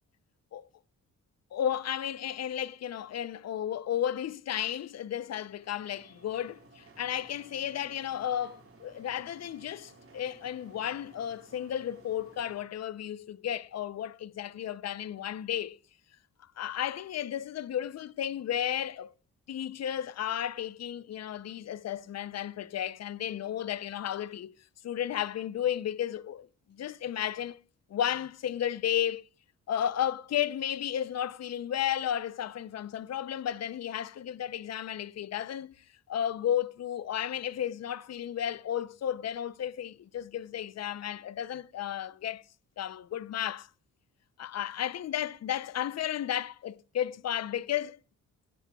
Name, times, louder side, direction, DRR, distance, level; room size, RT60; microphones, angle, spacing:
voice 1, 1.5-15.8 16.6-19.1 19.5-24.6 24.8-27.6 27.9-29.2 29.7-35.7 36.1-42.4 42.8-43.7 44.4-48.0, left 10 dB, 55° left, 0.6 m, -33 dB
sound 1, 5.3-12.6, right 3 dB, 45° right, 3.9 m, -57 dB
16.5 x 12.5 x 2.3 m
wide cardioid pair, 145°, 32 cm